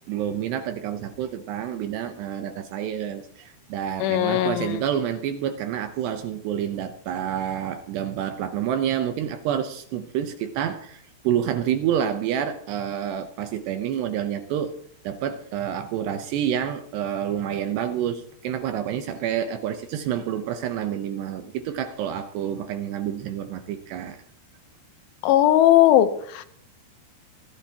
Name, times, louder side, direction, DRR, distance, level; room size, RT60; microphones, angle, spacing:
voice 1, 0.0-14.7 15.0-24.2, right 9 dB, 75° right, 8 dB, 2.6 m, -28 dB
voice 2, 4.0-4.8 25.2-26.5, left 13 dB, 80° left, 11 dB, 3.3 m, -18 dB
25.5 x 15.0 x 2.9 m, 0.63 s
omnidirectional pair, 5.6 m